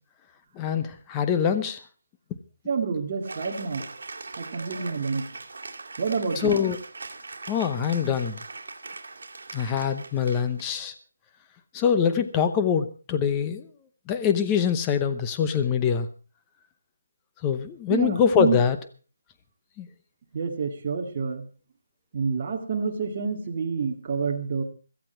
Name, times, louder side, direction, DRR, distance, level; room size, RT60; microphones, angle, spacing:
voice 1, 0.6-1.8 6.4-6.8 7.5-8.4 9.5-10.9 11.7-13.7 14.1-16.1 17.4-18.8 19.8-19.9, left 7 dB, 10° left, 9 dB, 0.8 m, -24 dB
voice 2, 2.7-3.8 4.4-5.2 6.0-6.6 17.9-18.6 20.3-21.4 22.1-24.6, right 5 dB, 25° right, 2 dB, 2.1 m, -28 dB
Cheering / Applause, 3.2-10.8, right 3 dB, 60° right, 2.7 m, -40 dB
16.5 x 14.0 x 4.5 m, 0.37 s
hypercardioid pair, 175°, 0 cm